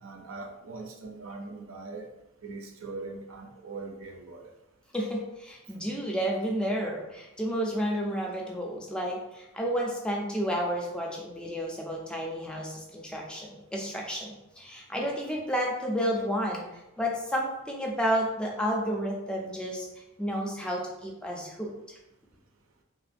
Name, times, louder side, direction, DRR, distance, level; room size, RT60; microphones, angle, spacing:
voice 1, 0.0-2.1 2.4-4.5, right 3 dB, 70° right, 3 dB, 0.5 m, -41 dB
voice 2, 4.9-16.6 17.0-19.9 20.2-21.7, equal, 5° left, -1 dB, 0.4 m, -31 dB
3.0 x 2.4 x 2.5 m, 0.91 s
head